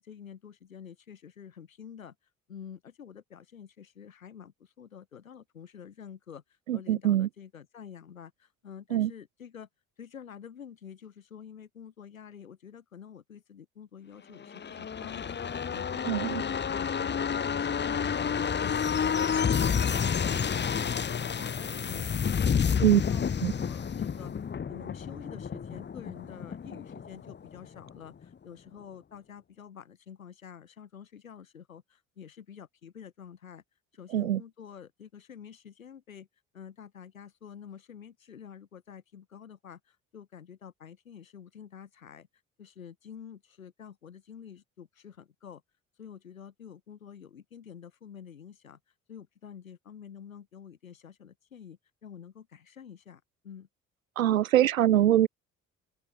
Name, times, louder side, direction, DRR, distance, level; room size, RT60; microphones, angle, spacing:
voice 1, 0.0-2.2 2.5-6.4 6.7-9.7 10.0-24.3 24.7-33.6 33.9-36.3 36.5-42.3 42.6-45.6 46.0-48.8 49.1-53.7, left 8 dB, 80° left, 7.6 m, -48 dB
voice 2, 6.7-7.3 8.9-9.1 16.0-16.4 22.8-23.0 23.4-23.5 34.1-34.4 54.2-55.3, right 12 dB, 80° right, 0.7 m, -23 dB
sound 1, 14.4-27.9 28.2-28.3, left 7 dB, 25° left, 1.3 m, -30 dB
open air
figure-of-eight pair, 50°, 40 cm